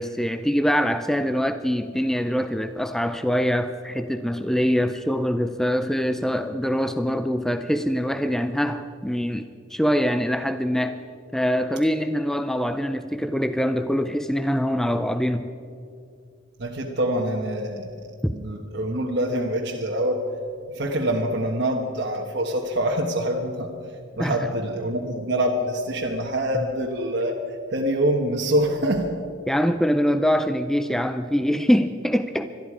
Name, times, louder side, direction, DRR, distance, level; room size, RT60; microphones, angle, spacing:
voice 1, 0.0-11.0 11.3-15.5 18.2-18.3 24.2-24.4 26.5-26.7 29.5-32.5, equal, ahead, 9 dB, 0.4 m, -24 dB
voice 2, 16.6-18.0 18.3-20.2 20.7-23.7 24.2-27.4 27.7-29.1, right 1 dB, 55° right, 0 dB, 1.2 m, -25 dB
21.5 x 13.5 x 4.9 m, 2.4 s
head